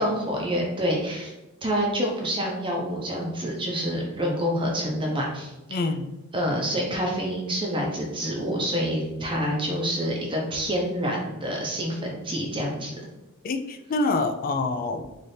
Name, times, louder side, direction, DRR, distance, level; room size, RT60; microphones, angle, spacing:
voice 1, 0.0-1.3 1.6-5.8 6.3-12.9, equal, 25° right, -1 dB, 0.6 m, -27 dB
voice 2, 5.7-6.1 13.4-15.1, left 3 dB, 40° left, 7 dB, 0.3 m, -26 dB
4.1 x 2.6 x 3.3 m, 0.99 s
head